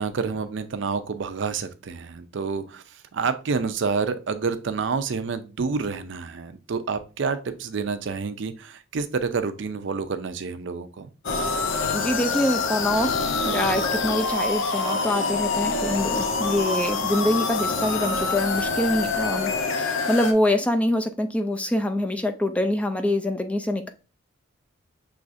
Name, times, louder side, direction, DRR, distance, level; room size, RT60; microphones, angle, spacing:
voice 1, 0.0-11.1, right 5 dB, 65° right, 10 dB, 0.4 m, -28 dB
sound 1, 11.2-20.3, left 4 dB, 75° left, 0.7 m, -26 dB
voice 2, 11.9-23.9, left 1 dB, 5° left, 6 dB, 0.3 m, -25 dB
6.2 x 3.1 x 2.5 m, 0.34 s
head